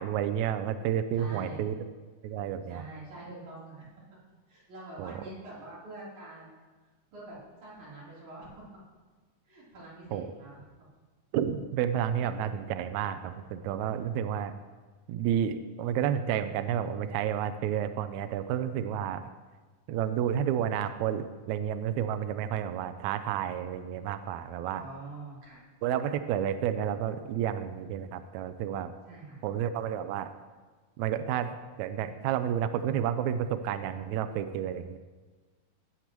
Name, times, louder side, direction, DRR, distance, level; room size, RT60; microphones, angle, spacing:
voice 1, 0.0-1.8 2.2-2.9 5.0-5.1 10.1-10.3 11.3-14.5 15.1-19.3 19.9-24.8 25.8-28.9 29.4-30.3 31.0-35.0, right 9 dB, 85° right, 10 dB, 1.6 m, -31 dB
voice 2, 1.1-1.6 2.7-3.8 4.5-6.6 7.1-8.5 9.4-10.6 24.7-25.6 29.1-29.4, right 2 dB, 60° right, -8 dB, 5.0 m, -45 dB
17.0 x 8.1 x 3.0 m, 1.3 s
omnidirectional pair, 3.9 m